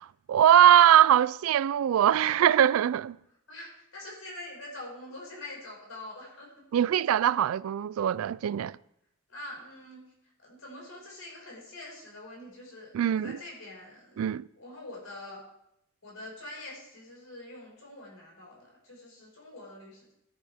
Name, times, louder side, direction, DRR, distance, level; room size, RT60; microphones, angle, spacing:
voice 1, 0.0-3.2 6.7-8.8 12.9-13.4 14.2-14.5, right 10 dB, 80° right, 0.3 m, -22 dB
voice 2, 3.5-6.5 9.3-10.0 10.4-14.2 14.6-15.4 16.0-20.1, left 1 dB, 75° left, 5.5 m, -45 dB
13.5 x 11.0 x 3.5 m
head